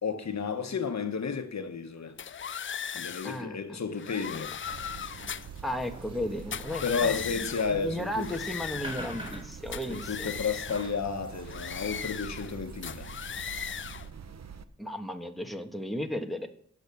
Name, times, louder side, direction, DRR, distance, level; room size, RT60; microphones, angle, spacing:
voice 1, 0.0-2.1 2.9-4.5 6.8-8.4 9.9-13.1, left 5 dB, 65° left, 1.3 m, -32 dB
sound 1, 2.2-3.4 3.9-5.6 6.4-7.8 8.1-9.4 9.7-10.9 11.5-12.5 12.8-14.1, left 7 dB, 45° left, 0.4 m, -38 dB
voice 2, 3.2-3.8 5.6-10.3 14.8-16.5, left 1 dB, ahead, 1.4 m, -35 dB
sound 2, 4.6-14.6, right 6 dB, 65° right, 0.8 m, -45 dB
sound 3, 5.0-13.7, right 1 dB, 20° right, 3.5 m, -49 dB
16.0 x 6.6 x 7.0 m
wide cardioid pair, 90°, 29 cm